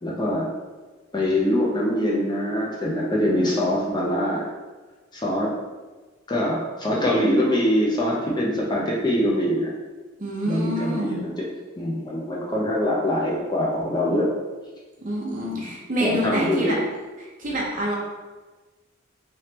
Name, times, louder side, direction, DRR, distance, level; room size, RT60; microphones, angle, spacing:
voice 1, 0.0-0.5 1.1-4.4 5.1-5.5 6.3-9.7 10.4-11.4 11.8-14.3 15.5-15.7 16.0-16.7, left 1 dB, 20° left, -4 dB, 0.6 m, -23 dB
voice 2, 10.2-11.2 15.0-16.8 17.2-18.0, equal, 45° right, -4 dB, 0.8 m, -27 dB
3.2 x 3.1 x 2.9 m, 1.3 s
head